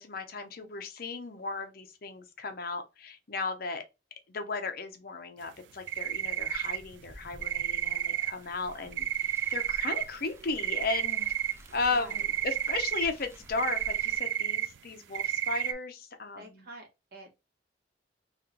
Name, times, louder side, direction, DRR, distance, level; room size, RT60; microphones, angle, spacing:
voice 1, 0.0-3.8 4.3-16.6, left 3 dB, 55° left, 0.7 m, -35 dB
sound 1, 5.9-7.1 7.4-8.3 8.9-10.0 10.4-11.8 12.1-13.0 13.6-14.8 15.1-15.7, right 11 dB, 85° right, 0.4 m, -31 dB
Car, 6.0-14.2, right 1 dB, 15° right, 0.5 m, -52 dB
voice 2, 11.9-12.3 16.4-17.3, right 1 dB, 60° right, 1.4 m, -48 dB
3.1 x 2.9 x 3.7 m
head